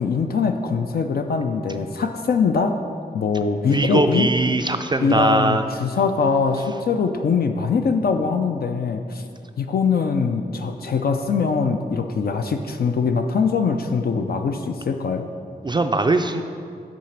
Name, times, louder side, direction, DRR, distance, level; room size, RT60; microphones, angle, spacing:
voice 1, 0.0-2.8 3.1-4.3 5.0-9.2 9.6-15.3, left 5 dB, 70° left, 5 dB, 0.4 m, -22 dB
voice 2, 3.7-5.6 15.6-16.4, right 2 dB, 25° right, 6 dB, 0.3 m, -20 dB
6.1 x 4.0 x 5.8 m, 2.3 s
cardioid pair, 50°, 17 cm